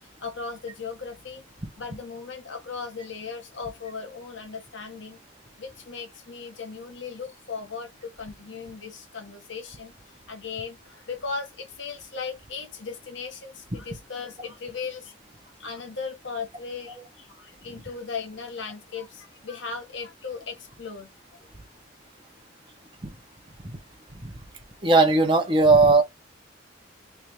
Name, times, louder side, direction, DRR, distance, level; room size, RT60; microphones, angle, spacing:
voice 1, 0.2-1.4 1.8-5.2 5.6-15.1 15.4-21.4, left 5 dB, 60° left, 1.3 m, -37 dB
voice 2, 24.8-26.0, right 3 dB, 25° right, 0.9 m, -17 dB
3.4 x 3.2 x 3.0 m
head